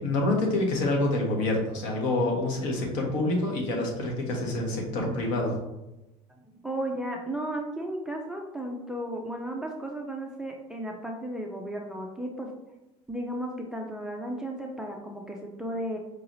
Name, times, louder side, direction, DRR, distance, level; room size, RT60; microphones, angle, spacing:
voice 1, 0.0-5.6, left 2 dB, 65° left, 1 dB, 1.1 m, -27 dB
voice 2, 6.5-12.5 13.1-16.0, right 1 dB, 5° right, 1 dB, 0.4 m, -34 dB
4.8 x 2.9 x 2.6 m, 0.95 s
cardioid pair, 140°, 14 cm